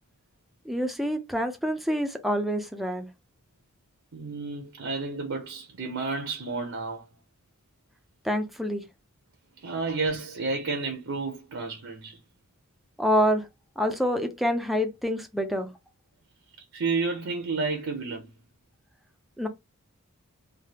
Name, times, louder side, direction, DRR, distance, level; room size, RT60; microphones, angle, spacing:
voice 1, 0.7-3.1 8.2-8.8 13.0-13.5 13.8-15.7 19.4-19.5, equal, ahead, 0.4 m, -27 dB
voice 2, 4.1-7.1 9.6-12.2 16.7-18.3, right 4 dB, 55° right, 0.6 m, -31 dB
3.3 x 2.2 x 2.8 m
head